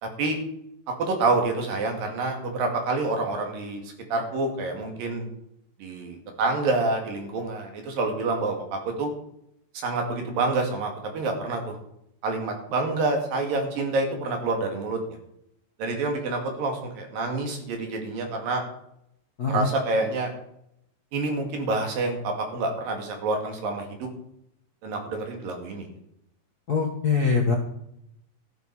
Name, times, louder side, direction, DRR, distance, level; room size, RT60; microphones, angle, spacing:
voice 1, 0.0-0.4 1.1-3.8 4.1-5.3 5.8-9.1 9.7-11.8 12.2-15.0 15.8-18.6 19.5-20.3 21.1-24.1 24.8-25.9, right 3 dB, 70° right, 3 dB, 3.9 m, -27 dB
voice 2, 26.7-27.5, left 5 dB, 60° left, 1 dB, 0.9 m, -23 dB
14.0 x 11.0 x 4.8 m, 0.76 s
omnidirectional pair, 4.1 m